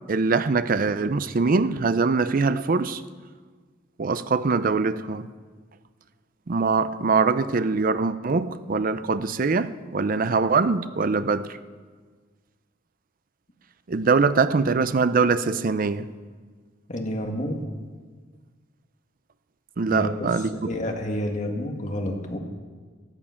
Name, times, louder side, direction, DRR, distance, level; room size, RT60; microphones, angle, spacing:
voice 1, 0.1-3.0 4.0-5.3 6.5-11.6 13.9-16.1 19.8-20.7, right 4 dB, 45° right, 0.5 m, -23 dB
voice 2, 16.9-17.6 19.9-22.4, equal, 40° left, 1.8 m, -29 dB
16.0 x 12.0 x 5.8 m
head